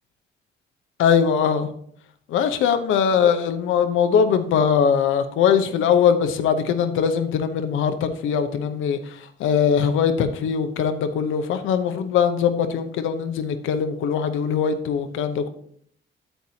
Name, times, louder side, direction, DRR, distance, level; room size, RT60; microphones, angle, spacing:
voice 1, 1.0-1.7 2.3-9.0 9.4-15.5, left 7 dB, 80° left, 9 dB, 0.8 m, -21 dB
9.1 x 8.0 x 2.8 m, 0.66 s
cardioid pair, 90°, 20 cm